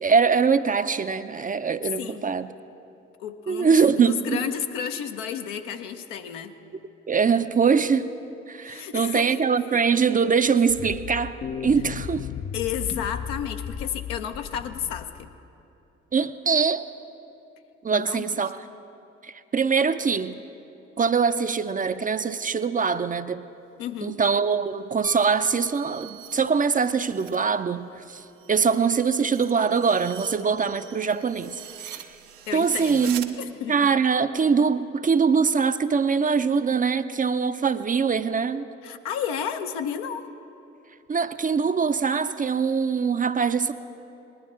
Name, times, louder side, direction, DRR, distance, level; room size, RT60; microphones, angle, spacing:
voice 1, 0.0-2.5 3.5-4.4 7.1-8.1 8.5-12.3 16.1-16.8 17.8-18.6 19.2-20.4 21.0-23.4 24.0-32.1 32.5-33.4 33.7-38.7 41.1-43.7, right 5 dB, 25° right, 11 dB, 0.5 m, -23 dB
voice 2, 3.2-6.5 8.6-9.3 12.5-15.3 17.9-18.3 23.8-24.2 32.5-33.8 38.8-40.3, left 8 dB, 75° left, 7 dB, 0.8 m, -32 dB
sound 1, 10.7-15.4, left 8 dB, 30° left, 0.4 m, -35 dB
Piano, 25.0-26.6 29.0-29.1, left 5 dB, 50° left, 1.1 m, -45 dB
sound 2, 25.0-27.4 27.8-33.3, right 11 dB, 70° right, 0.7 m, -43 dB
20.0 x 11.0 x 3.7 m, 2.8 s
hypercardioid pair, 45°, 35 cm